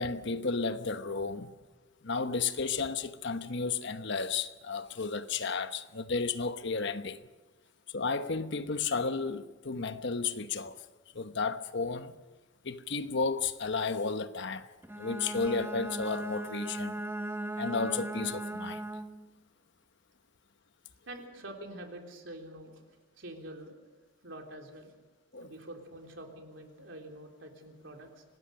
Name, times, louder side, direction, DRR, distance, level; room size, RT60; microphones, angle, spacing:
voice 1, 0.0-1.5 2.0-7.2 7.9-10.8 11.1-12.1 12.6-14.7 15.0-17.0 17.5-18.8 25.3-25.5, left 4 dB, 60° left, 1.0 m, -33 dB
Bowed string instrument, 14.8-19.3, right 1 dB, 10° right, 0.7 m, -38 dB
voice 2, 21.1-22.8 23.2-23.8 24.2-24.9 25.4-28.2, right 1 dB, 65° right, 3.6 m, -46 dB
25.5 x 18.5 x 6.5 m
head